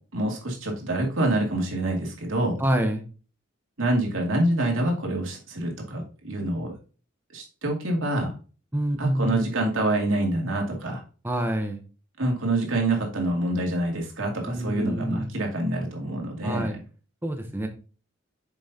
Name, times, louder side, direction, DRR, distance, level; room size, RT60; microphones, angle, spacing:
voice 1, 0.1-2.6 3.8-6.7 7.3-8.3 9.0-11.0 12.2-16.7, right 1 dB, 85° right, 0 dB, 2.3 m, -26 dB
voice 2, 2.6-3.0 8.7-9.4 11.2-11.8 14.5-15.3 16.4-16.8 17.2-17.7, right 1 dB, 10° right, 5 dB, 0.7 m, -27 dB
7.1 x 5.4 x 2.7 m, 0.35 s
head